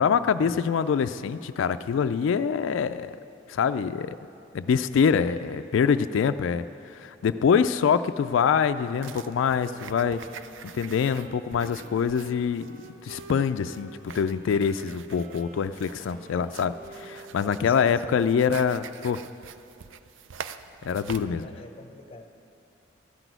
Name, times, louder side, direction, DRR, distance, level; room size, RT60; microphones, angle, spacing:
voice 1, 0.0-3.2 3.5-4.2 4.5-10.2 10.7-12.7 13.0-19.2 20.8-21.5, left 6 dB, 80° left, 11 dB, 0.3 m, -25 dB
sound 1, 8.9-21.2, right 7 dB, 75° right, 0.4 m, -45 dB
Wind instrument woodwind instrument, 9.4-17.7, right 3 dB, 45° right, 0.8 m, -49 dB
voice 2, 17.7-18.0 21.2-22.3, left 2 dB, 30° left, 6 dB, 0.7 m, -46 dB
13.5 x 6.1 x 9.1 m, 2.7 s
head